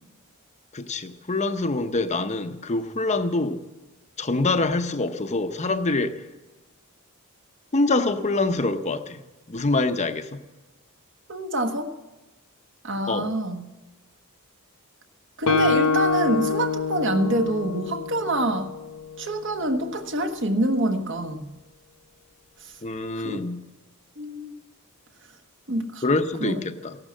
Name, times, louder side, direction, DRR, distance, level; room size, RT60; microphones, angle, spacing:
voice 1, 0.7-3.7 4.2-6.3 7.7-9.2 9.5-10.4 13.1-13.3 22.8-23.6 26.0-27.0, left 2 dB, 30° left, 0.8 m, -25 dB
voice 2, 11.3-11.9 12.8-13.6 15.4-18.7 19.2-21.5 23.1-23.4 24.2-24.5 25.7-26.0 26.4-26.6, right 1 dB, 55° right, 1.3 m, -26 dB
Guitar, 15.5-19.1, left 4 dB, 65° left, 1.1 m, -25 dB
15.0 x 11.5 x 7.4 m
head